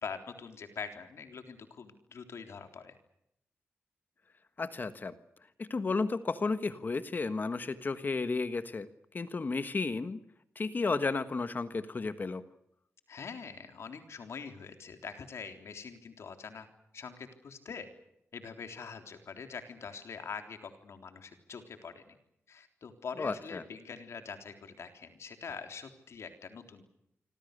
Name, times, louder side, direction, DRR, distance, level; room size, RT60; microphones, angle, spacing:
voice 1, 0.0-3.0 13.1-16.7 16.9-17.9 18.3-22.2 22.5-26.8, left 5 dB, 75° left, 6 dB, 3.6 m, -44 dB
voice 2, 4.6-5.1 5.6-8.9 9.1-10.2 10.5-12.4 23.2-23.6, left 3 dB, 40° left, 11 dB, 1.4 m, -33 dB
26.0 x 25.0 x 6.7 m, 0.80 s
wide cardioid pair, 105°, 5 cm